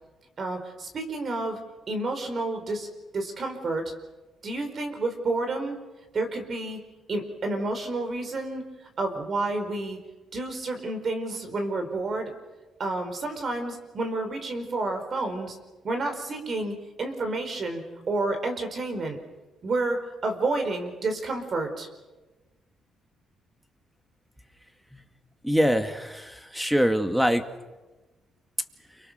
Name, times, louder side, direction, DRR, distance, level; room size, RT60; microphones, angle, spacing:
voice 1, 0.4-1.6 1.9-2.9 3.1-3.9 4.4-5.8 6.1-6.8 7.1-8.6 9.0-10.0 10.3-12.3 12.8-15.6 15.8-19.2 19.6-21.9, right 2 dB, 50° right, 6 dB, 4.8 m, -30 dB
voice 2, 25.4-27.4, equal, 5° right, 8 dB, 2.2 m, -24 dB
29.5 x 24.5 x 6.8 m, 1.2 s
cardioid pair, 90°, 0 cm